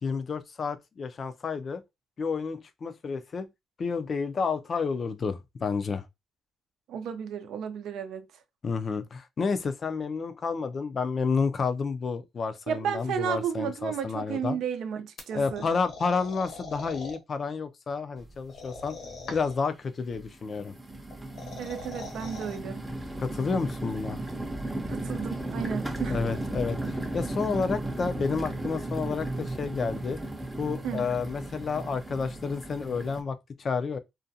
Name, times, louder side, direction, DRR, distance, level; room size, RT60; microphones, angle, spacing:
voice 1, 0.0-1.8 2.2-3.5 3.8-6.1 8.6-14.6 15.3-19.0 19.3-20.7 23.2-24.2 26.1-30.2 30.6-34.0, left 5 dB, 45° left, 0.4 m, -30 dB
voice 2, 6.9-8.2 12.7-15.7 21.6-22.8 24.9-26.2 30.8-31.1, right 8 dB, 75° right, 0.5 m, -33 dB
sound 1, 15.2-17.2 18.5-19.7 21.1-22.6, left 3 dB, 70° left, 0.9 m, -42 dB
sound 2, 18.2-18.3 18.7-19.4 20.0-33.2, right 1 dB, 10° right, 0.6 m, -35 dB
2.5 x 2.2 x 2.6 m
cardioid pair, 90°, 0 cm